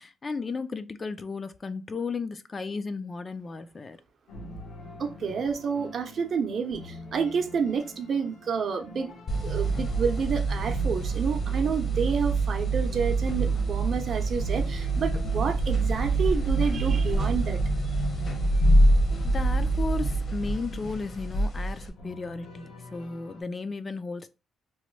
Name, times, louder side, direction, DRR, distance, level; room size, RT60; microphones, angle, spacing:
voice 1, 0.0-4.0 19.2-24.3, left 4 dB, 35° left, 0.3 m, -34 dB
sound 1, 4.3-23.4, left 2 dB, 85° left, 1.0 m, -46 dB
voice 2, 5.0-9.1 9.4-17.6 17.8-18.0, right 6 dB, 55° right, 0.6 m, -29 dB
sound 2, 9.3-21.9, right 2 dB, 50° left, 0.8 m, -25 dB
3.0 x 2.2 x 3.1 m
cardioid pair, 90°, 0 cm